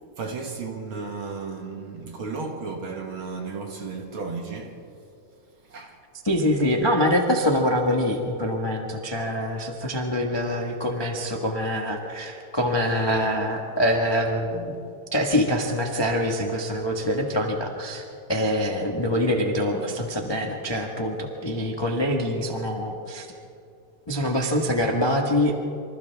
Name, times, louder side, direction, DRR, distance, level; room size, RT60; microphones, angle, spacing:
voice 1, 0.2-4.8 5.7-6.0, right 4 dB, 50° right, 2.1 m, -34 dB
voice 2, 6.2-14.8 15.1-18.0 18.3-23.3 24.1-25.7, equal, 20° left, 0.6 m, -25 dB
27.5 x 26.0 x 3.6 m
omnidirectional pair, 3.5 m